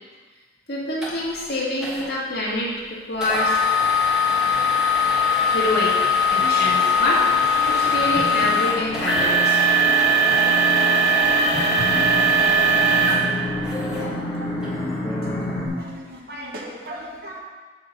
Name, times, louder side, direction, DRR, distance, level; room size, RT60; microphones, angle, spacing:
voice 1, 0.7-2.7 3.1-3.5 5.5-7.3 7.7-9.6 14.0-14.1, left 1 dB, 65° left, -6 dB, 2.2 m, -26 dB
sound 1, 1.0-1.1 1.8-2.0 3.2-14.0 14.6-14.7 15.3-15.5, equal, 5° right, 1.6 m, -20 dB
sound 2, 3.3-15.7, left 1 dB, 20° left, 1.8 m, -30 dB
voice 2, 15.0-17.4, right 1 dB, 55° right, -2 dB, 1.2 m, -38 dB
8.7 x 4.0 x 6.7 m, 1.3 s
head